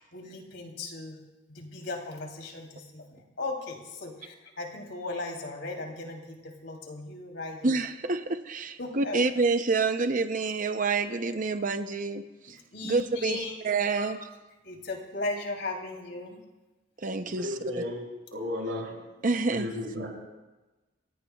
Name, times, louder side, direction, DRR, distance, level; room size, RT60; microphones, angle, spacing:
voice 1, 0.1-1.2 1.5-6.4 6.6-7.6 8.8-9.2 12.7-13.5 14.0-14.1 14.6-16.4, left 2 dB, 70° left, 1 dB, 3.2 m, -37 dB
voice 2, 7.6-14.2 17.0-17.5 19.2-19.7, right 3 dB, 45° right, 8 dB, 0.7 m, -28 dB
voice 3, 17.4-18.0 18.3-18.9 19.5-20.1, left 1 dB, 80° right, -2 dB, 6.7 m, -33 dB
28.0 x 17.5 x 2.3 m, 1.1 s
head